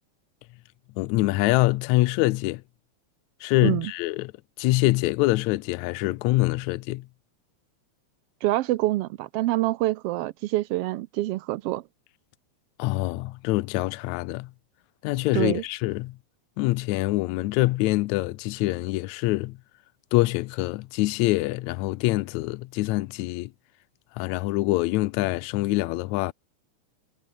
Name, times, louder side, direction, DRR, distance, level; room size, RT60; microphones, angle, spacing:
voice 1, 1.0-2.6 3.4-4.3 4.6-7.1 12.8-14.5 15.0-16.2 16.6-19.6 20.1-23.5 24.2-26.3, left 19 dB, 80° left, 1.9 m, -25 dB
voice 2, 8.4-11.8 15.3-15.6, right 17 dB, 90° right, 1.3 m, -26 dB
omnidirectional pair, 3.4 m